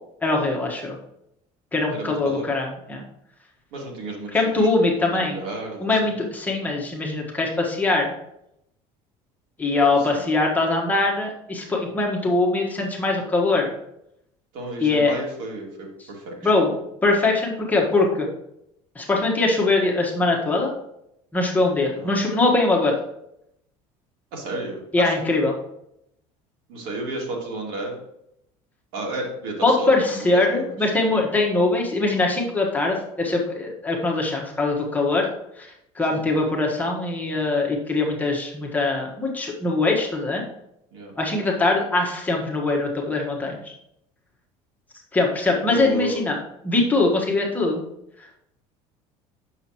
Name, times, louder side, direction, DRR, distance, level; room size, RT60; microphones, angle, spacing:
voice 1, 0.2-1.0 1.7-3.0 4.3-5.4 5.8-8.1 9.6-13.7 14.8-15.2 16.0-16.1 16.4-16.7 17.0-18.3 18.9-20.7 21.3-22.9 24.9-25.6 29.6-35.3 35.6-40.4 41.2-43.7 45.1-46.4 46.6-47.8, left 2 dB, 10° left, -1 dB, 1.4 m, -22 dB
voice 2, 1.9-2.5 3.7-4.3 4.6-4.7 5.0-6.1 10.1-10.2 14.5-16.5 21.9-22.1 24.3-25.1 26.7-28.0 28.9-30.7 31.0-31.2 36.1-36.2 40.9-41.1 45.7-46.2, right 2 dB, 80° right, -1 dB, 2.3 m, -32 dB
7.8 x 6.5 x 3.0 m, 0.78 s
cardioid pair, 140°, 14 cm